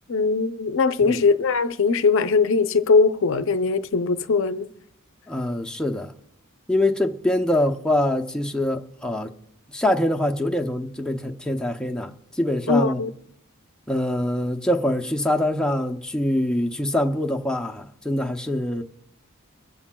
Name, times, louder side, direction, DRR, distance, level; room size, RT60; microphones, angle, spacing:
voice 1, 0.1-4.7 12.7-13.1, left 4 dB, 60° left, 0.6 m, -20 dB
voice 2, 5.3-6.1 6.7-9.3 9.7-13.0 13.9-18.8, left 1 dB, 5° left, 0.6 m, -24 dB
22.5 x 14.5 x 2.2 m
head